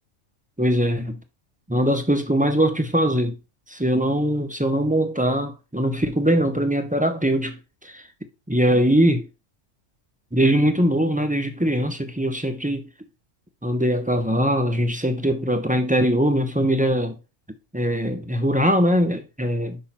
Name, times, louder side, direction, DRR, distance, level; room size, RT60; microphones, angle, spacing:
voice 1, 0.6-1.2 1.7-3.4 3.7-8.1 8.5-9.3 10.3-12.8 13.6-17.2 17.7-19.8, equal, 10° right, 0.5 m, -21 dB
5.8 x 5.5 x 4.2 m
omnidirectional pair, 1.4 m